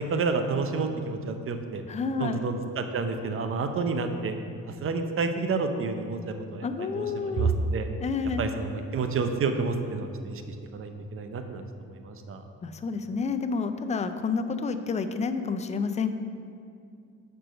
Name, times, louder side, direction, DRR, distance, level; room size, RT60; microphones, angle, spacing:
voice 1, 0.1-1.8 2.2-4.3 4.8-6.7 7.0-7.9 8.4-10.4 10.7-11.6 11.9-12.4, right 4 dB, 45° right, 7 dB, 0.6 m, -29 dB
voice 2, 1.9-2.5 6.6-7.6 8.0-8.5 12.6-16.1, left 5 dB, 25° left, 9 dB, 0.4 m, -29 dB
6.1 x 4.7 x 5.1 m, 2.5 s
cardioid pair, 90°, 30 cm